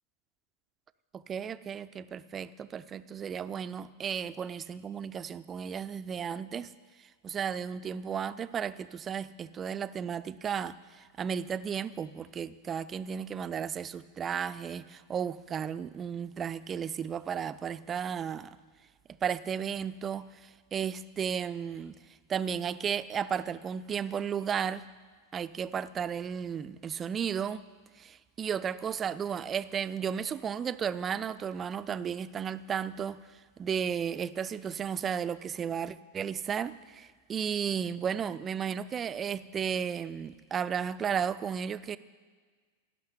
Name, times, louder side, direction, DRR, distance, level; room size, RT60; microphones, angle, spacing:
voice 1, 1.1-6.7 7.2-18.6 19.2-22.0 22.3-24.8 25.3-27.6 28.0-33.2 33.6-42.0, right 7 dB, 25° right, 14 dB, 0.5 m, -34 dB
17.0 x 6.6 x 9.6 m, 1.5 s
figure-of-eight pair, 90°, 0 cm